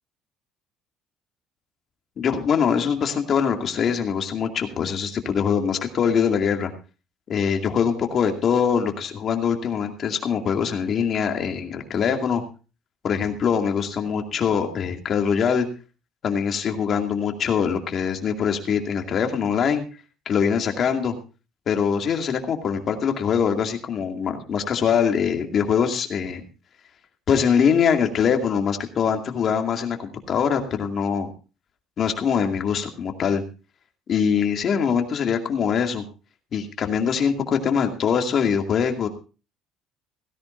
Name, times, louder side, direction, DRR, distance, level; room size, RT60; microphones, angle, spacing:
voice 1, 2.2-6.7 7.3-12.4 13.0-15.7 16.2-19.8 20.3-21.1 21.7-26.4 27.3-31.3 32.0-33.4 34.1-36.0 36.5-39.1, left 7 dB, 40° left, 4 dB, 2.3 m, -23 dB
17.0 x 16.0 x 2.6 m, 0.33 s
cardioid pair, 160°, 0 cm